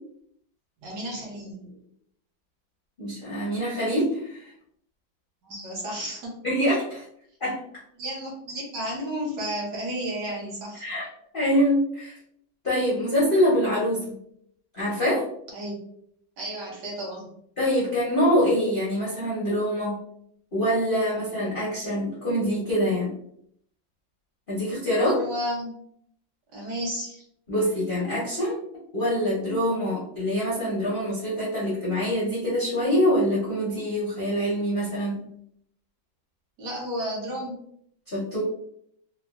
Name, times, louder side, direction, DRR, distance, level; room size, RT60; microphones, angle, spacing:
voice 1, 0.8-1.8 5.4-6.3 8.0-10.8 15.5-15.7 16.4-17.3 25.0-25.7 26.5-27.2 36.6-37.6, equal, 65° right, -3 dB, 1.4 m, -32 dB
voice 2, 3.0-4.5 6.4-7.0 7.4-7.6 10.8-11.1 11.3-12.1 12.6-14.1 14.7-15.3 17.6-20.0 20.5-23.1 24.5-25.2 27.5-28.6 28.9-35.2 38.1-38.4, equal, 60° left, -8 dB, 0.5 m, -25 dB
3.5 x 2.0 x 2.3 m, 0.70 s
omnidirectional pair, 2.1 m